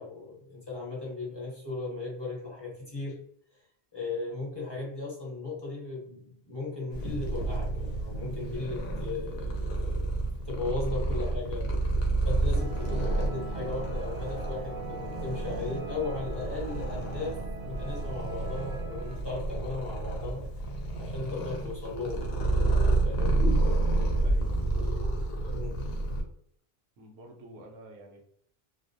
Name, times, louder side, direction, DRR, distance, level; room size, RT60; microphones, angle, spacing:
voice 1, 0.0-3.2 3.9-11.7 12.2-20.5 21.0-22.7 23.0-23.4 25.5-25.8, left 3 dB, 25° left, -4 dB, 0.8 m, -37 dB
Purr, 6.9-26.2, right 2 dB, 80° left, 0.8 m, -30 dB
sound 1, 12.5-19.2, right 3 dB, 55° right, 0.6 m, -41 dB
voice 2, 24.2-25.6 27.0-28.2, right 1 dB, 90° right, 1 dB, 0.9 m, -50 dB
2.4 x 2.0 x 2.6 m, 0.65 s
omnidirectional pair, 1.0 m